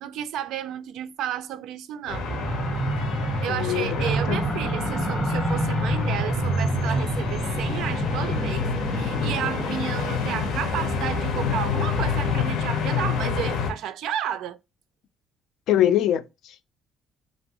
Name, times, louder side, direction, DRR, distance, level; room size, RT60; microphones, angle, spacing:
voice 1, 0.0-2.3 3.4-14.6, right 10 dB, 70° right, 0.3 m, -32 dB
sound 1, 2.1-13.7, left 6 dB, 90° left, 0.7 m, -28 dB
sound 2, 2.1-12.6, right 1 dB, ahead, 0.6 m, -28 dB
voice 2, 3.5-4.4 15.7-16.7, left 11 dB, 65° left, 0.3 m, -24 dB
2.9 x 2.5 x 2.9 m
cardioid pair, 175°, 0 cm